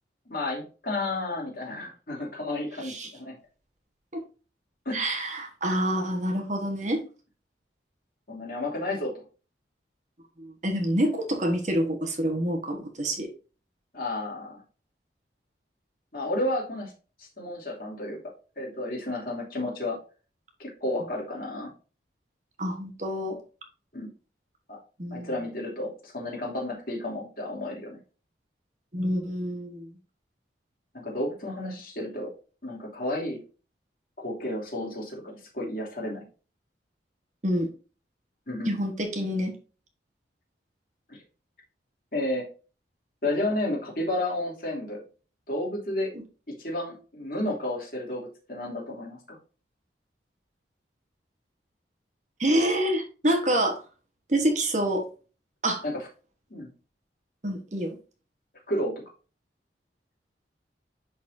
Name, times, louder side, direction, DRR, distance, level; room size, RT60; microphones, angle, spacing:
voice 1, 0.3-3.4 4.8-5.0 8.3-9.1 13.9-14.6 16.1-16.9 17.2-18.2 18.6-20.0 20.6-21.7 23.9-24.1 24.7-24.8 25.1-28.0 30.9-32.3 32.6-33.4 34.2-36.2 38.5-38.7 41.1-41.2 42.1-42.4 43.2-45.0 45.5-46.1 46.5-49.4 55.8-56.0 56.5-56.7 58.7-58.9, left 1 dB, 50° left, -3 dB, 2.7 m, -32 dB
voice 2, 4.9-7.0 10.4-13.3 22.6-23.4 25.0-25.3 28.9-29.9 37.4-37.7 38.7-39.5 46.1-46.2 52.4-53.8 54.3-55.0 55.6-55.8 57.4-58.0, right 1 dB, 40° right, 3 dB, 1.3 m, -27 dB
10.5 x 4.1 x 2.6 m, 0.36 s
head